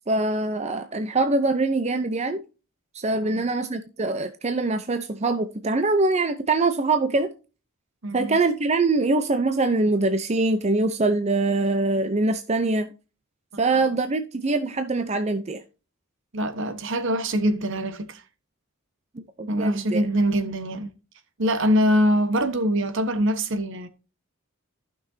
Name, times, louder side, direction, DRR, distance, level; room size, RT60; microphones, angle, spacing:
voice 1, 0.1-2.4 2.9-7.3 8.1-12.9 13.6-15.6 19.4-20.0, right 3 dB, 30° right, 0.6 m, -23 dB
voice 2, 3.1-3.5 8.0-8.4 16.3-18.2 19.5-20.9 21.4-23.9, equal, 60° right, 1.2 m, -23 dB
14.5 x 6.1 x 2.7 m
head